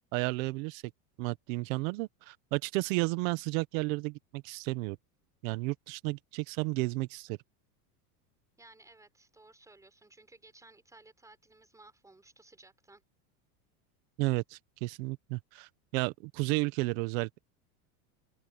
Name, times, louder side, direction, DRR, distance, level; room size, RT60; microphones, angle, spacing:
voice 1, 0.1-0.8 1.2-5.0 5.4-7.4 14.2-17.4, right 24 dB, 65° right, 1.4 m, -32 dB
voice 2, 8.6-13.0, right 2 dB, 5° right, 4.8 m, -57 dB
supercardioid pair, 150°, 43 cm